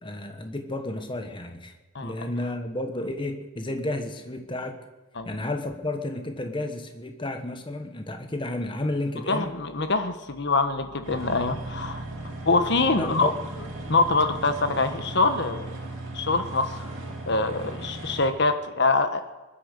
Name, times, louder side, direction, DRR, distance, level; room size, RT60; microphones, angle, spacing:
voice 1, 0.0-1.7 2.0-4.8 5.2-9.5 13.0-13.3, left 1 dB, 20° left, 6 dB, 1.2 m, -32 dB
voice 2, 9.3-12.0 12.4-13.3 13.9-15.7 16.1-16.9 17.3-19.2, left 3 dB, 50° left, 9 dB, 1.2 m, -24 dB
sound 1, 11.0-18.3, right 2 dB, 60° right, 3.4 m, -37 dB
20.5 x 10.0 x 6.6 m, 1.2 s
head